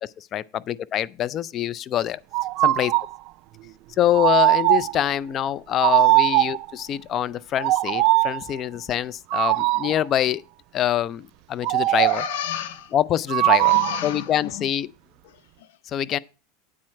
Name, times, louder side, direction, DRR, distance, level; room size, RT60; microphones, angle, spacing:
voice 1, 0.0-2.2 2.6-2.9 4.0-10.4 10.7-12.2 12.9-13.7 14.0-14.9 15.9-16.2, left 11 dB, 35° left, 0.4 m, -25 dB
sound 1, 2.3-3.2 4.1-5.0 5.8-6.7 7.6-8.4 9.3-10.0 11.6-12.4 13.3-14.1, right 19 dB, 55° right, 0.3 m, -20 dB
voice 2, 12.0-12.9 13.5-14.7 15.2-15.8, left 10 dB, 75° left, 0.8 m, -33 dB
8.6 x 4.4 x 7.3 m
supercardioid pair, 125°, 0 cm